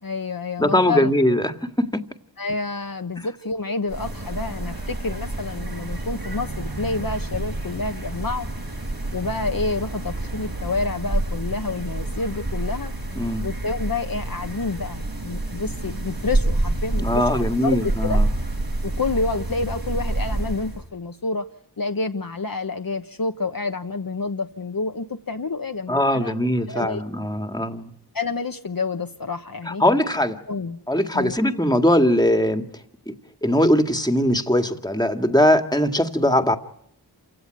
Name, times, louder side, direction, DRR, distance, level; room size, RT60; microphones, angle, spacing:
voice 1, 0.0-1.4 2.4-8.5 9.1-12.9 13.4-18.2 18.8-21.5 21.8-26.3 26.7-27.0 28.1-29.8 30.5-30.8 31.1-31.4, left 3 dB, 55° left, 6 dB, 1.2 m, -28 dB
voice 2, 0.6-2.0 13.1-13.5 17.0-18.3 25.9-27.9 29.7-30.4 30.9-32.7 33.4-36.6, left 1 dB, 10° left, 7 dB, 2.0 m, -20 dB
sound 1, 3.9-20.8, right 2 dB, 55° right, 6.9 m, -28 dB
28.0 x 17.0 x 9.3 m, 0.72 s
wide cardioid pair, 65°, 42 cm